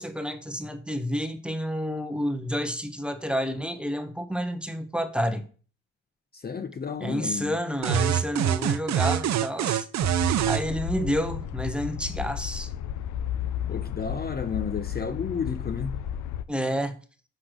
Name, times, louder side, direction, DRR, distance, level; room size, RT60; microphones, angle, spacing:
voice 1, 0.0-5.4 7.0-9.9 10.5-12.7 16.5-17.0, equal, 5° right, 1.2 m, -29 dB
voice 2, 6.4-7.6 13.7-16.0, left 6 dB, 30° left, 0.8 m, -32 dB
sound 1, 7.8-10.6, right 11 dB, 65° right, 0.7 m, -24 dB
sound 2, 10.0-16.4, left 10 dB, 75° left, 0.7 m, -33 dB
6.4 x 5.8 x 6.6 m
cardioid pair, 90°, 30 cm